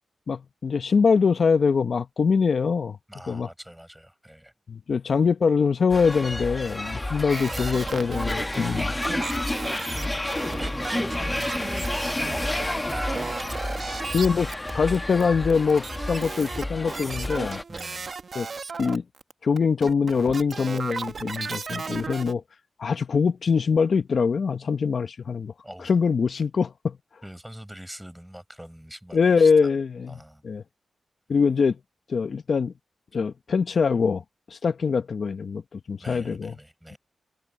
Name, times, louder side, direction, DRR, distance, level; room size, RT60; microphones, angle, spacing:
voice 1, 0.3-3.0 3.3-3.5 4.7-8.9 14.1-17.6 18.3-18.5 18.8-19.0 19.4-22.4 22.8-25.5 25.8-27.0 29.1-30.2 30.4-30.6 31.3-31.8 32.1-32.7 33.1-36.5, left 5 dB, 70° left, 0.9 m, -23 dB
voice 2, 3.1-4.5 10.2-13.3 17.7-18.1 25.6-25.9 27.2-29.7 30.1-30.4 36.0-37.0, equal, 5° right, 5.5 m, -44 dB
sound 1, 5.9-17.6, left 1 dB, 20° left, 1.7 m, -30 dB
sound 2, 7.3-15.0 15.2-19.3 19.6-22.3, right 4 dB, 60° right, 1.1 m, -35 dB
cardioid pair, 50°, 0 cm